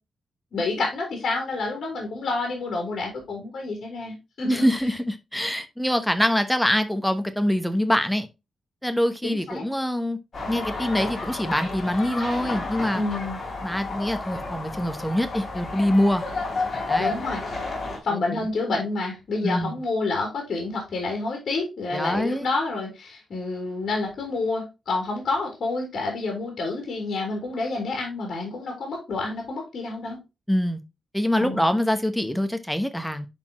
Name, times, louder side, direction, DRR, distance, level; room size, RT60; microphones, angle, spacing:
voice 1, 0.5-4.6 9.2-9.6 12.9-13.4 17.0-17.4 18.0-30.2 31.4-31.7, left 3 dB, 55° left, 3.2 m, -29 dB
voice 2, 4.5-8.3 8.8-10.2 10.5-13.0 13.6-16.2 16.9-17.1 18.1-18.4 19.4-19.8 21.9-22.5 30.5-30.8 31.1-33.3, left 1 dB, ahead, 0.8 m, -24 dB
sound 1, 10.3-18.0, left 3 dB, 35° left, 3.6 m, -31 dB
10.5 x 4.2 x 2.9 m
wide cardioid pair, 175°, 0 cm